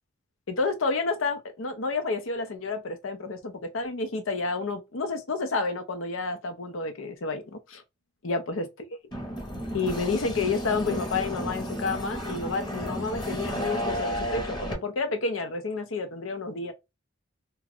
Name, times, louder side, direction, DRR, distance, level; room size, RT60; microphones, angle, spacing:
voice 1, 0.5-7.8 8.2-8.7 9.7-16.7, left 3 dB, 90° left, 0.6 m, -30 dB
sound 1, 9.1-14.7, equal, 20° left, 0.8 m, -32 dB
2.4 x 2.2 x 3.4 m
head